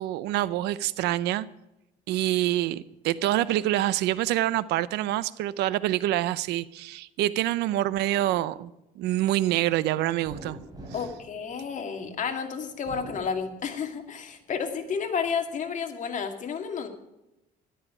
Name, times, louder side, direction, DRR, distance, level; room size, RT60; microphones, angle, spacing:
voice 1, 0.0-1.5 2.1-8.7 9.0-10.6, right 14 dB, 85° right, 0.7 m, -26 dB
sound 1, 10.2-12.2 12.7-14.0 14.5-15.4, right 1 dB, 25° right, 5.6 m, -45 dB
voice 2, 10.9-16.9, left 6 dB, 45° left, 2.3 m, -31 dB
13.5 x 12.0 x 4.9 m
cardioid pair, 110°, 17 cm